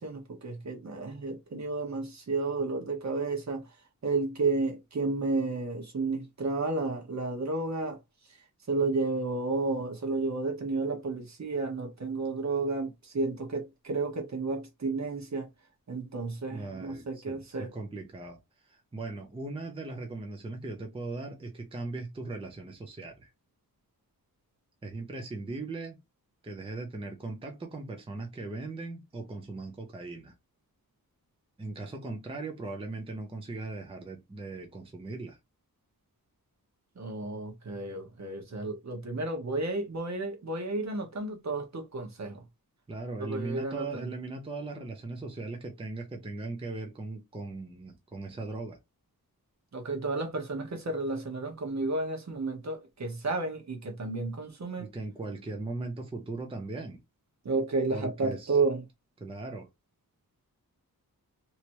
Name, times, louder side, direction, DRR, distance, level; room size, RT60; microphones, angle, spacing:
voice 1, 0.0-3.7 4.0-8.0 8.3-15.5 15.9-17.7 37.0-42.4 43.2-44.1 49.7-54.9 57.4-58.9, right 3 dB, 50° right, 1.2 m, -32 dB
voice 2, 16.5-23.3 24.8-26.0 26.4-30.3 31.6-35.4 42.9-48.8 54.8-57.0 57.9-58.6 59.2-59.7, right 3 dB, 15° right, 0.6 m, -39 dB
3.3 x 3.0 x 2.9 m
wide cardioid pair, 175°, 36 cm